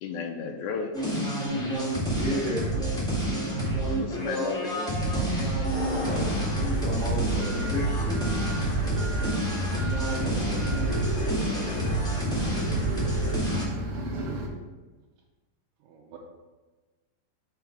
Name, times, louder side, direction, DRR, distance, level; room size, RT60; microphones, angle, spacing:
voice 1, 0.0-0.9 4.0-5.0 10.5-10.7, left 5 dB, 85° left, 4 dB, 1.7 m, -34 dB
sound 1, 0.9-13.6, right 1 dB, 5° left, 0.5 m, -28 dB
voice 2, 2.1-2.7 5.9-8.2 8.5-8.7, left 2 dB, 50° left, -9 dB, 1.0 m, -33 dB
sound 2, 5.6-11.9, left 2 dB, 65° left, 2.7 m, -37 dB
voice 3, 5.7-6.1 10.2-10.4 15.8-16.2, right 5 dB, 85° right, -3 dB, 2.5 m, -43 dB
sound 3, 7.4-14.5, right 1 dB, 65° right, 1.4 m, -34 dB
5.8 x 5.0 x 4.7 m, 1.3 s
omnidirectional pair, 4.0 m